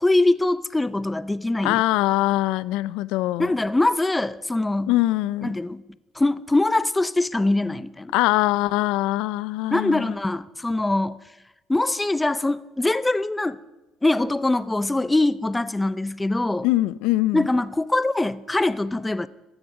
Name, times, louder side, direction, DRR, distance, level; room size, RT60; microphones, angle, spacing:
voice 1, 0.0-1.8 3.4-4.9 5.4-5.8 6.2-8.1 9.7-11.2 11.7-13.6 14.0-16.7 17.3-19.3, left 2 dB, 10° left, 0.5 m, -23 dB
voice 2, 1.6-3.5 4.9-5.5 8.1-10.2 16.6-17.5, left 17 dB, 85° left, 0.3 m, -22 dB
15.0 x 12.5 x 4.8 m
cardioid pair, 105°, 0 cm